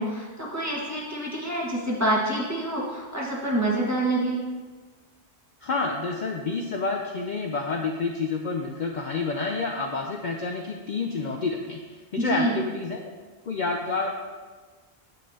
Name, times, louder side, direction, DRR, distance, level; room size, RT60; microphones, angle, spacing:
voice 1, 0.0-4.4 12.2-12.5, right 1 dB, 15° right, -5 dB, 1.5 m, -27 dB
voice 2, 5.6-13.0 13.5-14.1, left 4 dB, 55° left, 2 dB, 0.6 m, -29 dB
9.2 x 7.4 x 2.8 m, 1.4 s
omnidirectional pair, 1.1 m